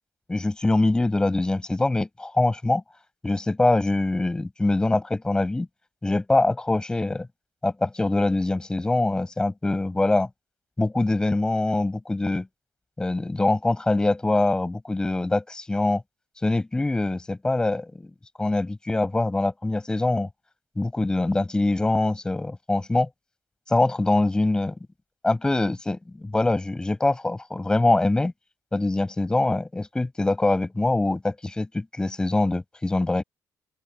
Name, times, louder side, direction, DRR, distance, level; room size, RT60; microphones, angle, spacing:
voice 1, 0.3-2.8 3.2-5.7 6.0-7.3 7.6-10.3 10.8-12.5 13.0-16.0 16.4-18.1 18.4-20.3 20.8-23.1 23.7-24.8 25.2-28.3 28.7-33.2, left 2 dB, 10° left, 7.5 m, -23 dB
open air
cardioid pair, 155°, 7 cm